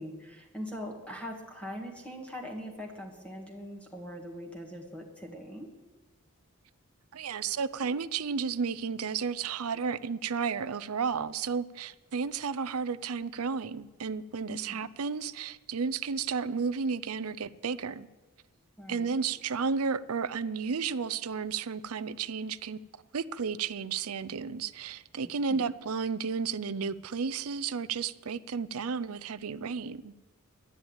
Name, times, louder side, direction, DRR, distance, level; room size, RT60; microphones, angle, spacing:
voice 1, 0.0-5.7 14.5-14.9 18.8-19.1 25.2-25.7, equal, 5° left, 2.0 m, -42 dB
voice 2, 7.1-18.1 18.9-22.8 23.1-30.1, right 5 dB, 75° right, 0.6 m, -32 dB
11.5 x 10.5 x 8.8 m
head